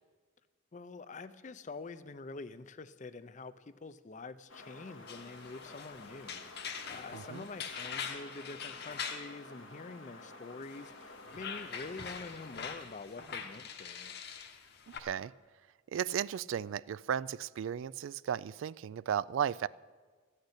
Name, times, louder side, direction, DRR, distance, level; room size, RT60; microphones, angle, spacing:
voice 1, 0.7-14.1, left 3 dB, 35° left, 14 dB, 0.5 m, -46 dB
sound 1, 4.5-12.8, left 2 dB, 80° left, 1.5 m, -52 dB
sound 2, 5.1-9.3 10.7-15.0, left 6 dB, 55° left, 1.1 m, -43 dB
voice 2, 7.1-7.5 14.9-15.3 15.9-19.7, right 9 dB, 75° right, 19 dB, 0.3 m, -35 dB
14.0 x 6.6 x 9.7 m, 1.5 s
head